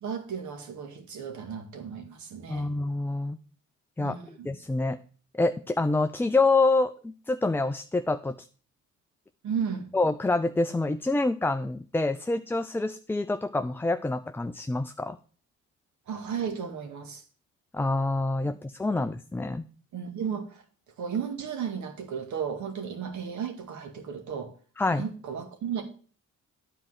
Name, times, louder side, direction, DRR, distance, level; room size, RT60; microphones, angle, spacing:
voice 1, 0.0-2.7 4.0-4.5 9.4-9.9 16.1-17.2 18.4-18.5 18.9-19.0 19.9-20.6 21.0-24.5 24.9-25.8, right 7 dB, 70° right, 2.0 m, -34 dB
voice 2, 2.5-3.4 4.0-4.2 4.5-5.0 5.3-8.4 9.9-15.2 17.7-19.6 24.8-25.1, left 2 dB, 5° left, 0.4 m, -26 dB
9.8 x 4.5 x 7.5 m
cardioid pair, 90°, 30 cm